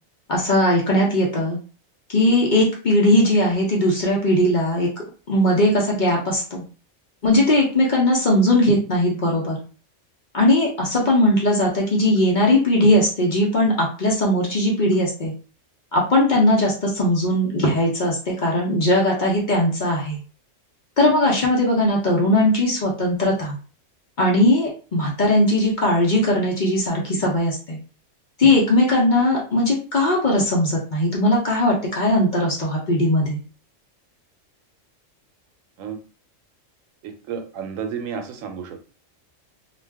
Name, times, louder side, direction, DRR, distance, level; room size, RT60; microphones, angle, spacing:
voice 1, 0.3-1.6 2.1-4.9 5.3-6.6 7.2-9.6 10.3-15.3 15.9-20.2 21.0-23.6 24.2-27.8 28.4-33.4, left 1 dB, 45° left, -3 dB, 0.7 m, -19 dB
voice 2, 37.0-38.8, right 7 dB, 85° right, 6 dB, 1.0 m, -31 dB
2.5 x 2.2 x 3.4 m, 0.37 s
omnidirectional pair, 1.3 m